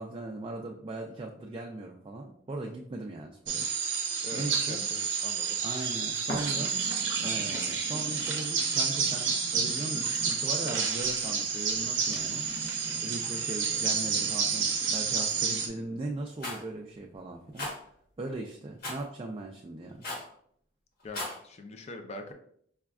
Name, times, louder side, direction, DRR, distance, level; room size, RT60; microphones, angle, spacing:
voice 1, 0.0-4.9 5.6-6.8 7.2-12.4 13.0-20.1, right 2 dB, 30° right, 0 dB, 0.3 m, -39 dB
sound 1, 3.5-15.7, right 6 dB, 85° right, 0.5 m, -30 dB
voice 2, 4.2-5.6 21.0-22.3, left 2 dB, 35° left, 5 dB, 0.4 m, -43 dB
sound 2, 6.3-16.3 16.8-16.9, equal, 80° left, 0.8 m, -44 dB
Rattle, 16.4-16.6 17.6-17.7 18.8-19.0 20.0-20.3 21.0-21.4, left 2 dB, 55° left, 1.0 m, -35 dB
4.9 x 2.3 x 2.3 m, 0.64 s
head